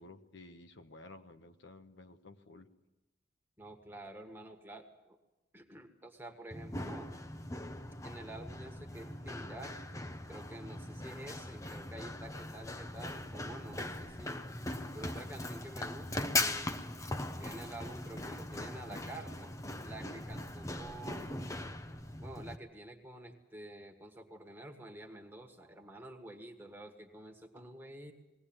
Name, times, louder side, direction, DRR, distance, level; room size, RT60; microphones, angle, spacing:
voice 1, 0.0-2.7, left 2 dB, 60° left, 6 dB, 1.1 m, -53 dB
voice 2, 3.6-5.2 5.5-7.1 8.0-9.8 10.3-14.4 14.9-16.7 17.4-19.5 19.8-21.5 22.2-28.1, right 1 dB, 10° right, 4 dB, 1.7 m, -49 dB
Run, 6.5-22.5, left 2 dB, 15° left, 0.7 m, -40 dB
20.5 x 17.5 x 8.9 m, 1.0 s
head